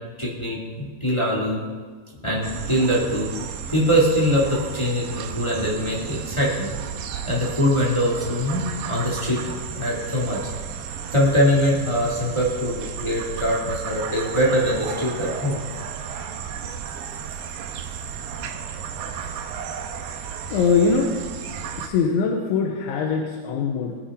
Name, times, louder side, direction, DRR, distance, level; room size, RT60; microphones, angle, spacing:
voice 1, 0.2-1.6 2.2-3.3 3.7-6.7 7.2-10.5 11.1-15.6, equal, 15° left, -5 dB, 0.8 m, -23 dB
sound 1, 2.4-21.9, right 7 dB, 90° right, 2.0 m, -34 dB
voice 2, 20.5-21.1 21.8-24.0, left 5 dB, 85° left, 1 dB, 3.3 m, -22 dB
21.5 x 10.0 x 3.7 m, 1.5 s
omnidirectional pair, 5.3 m